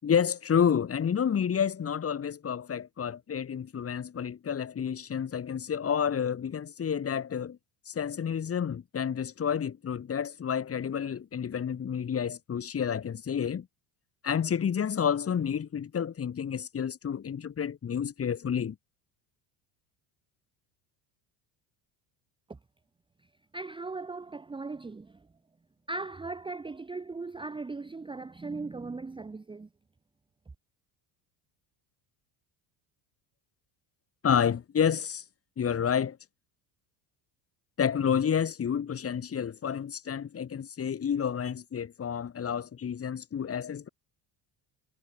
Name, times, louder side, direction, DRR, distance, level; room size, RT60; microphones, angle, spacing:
voice 1, 0.0-7.6 7.9-13.7 14.2-18.8 34.2-35.2 35.6-36.2 37.8-43.9, left 8 dB, 30° left, 5.4 m, -29 dB
voice 2, 23.5-25.3 25.9-29.7, right 3 dB, 10° right, 1.2 m, -38 dB
cardioid pair, 150°, 47 cm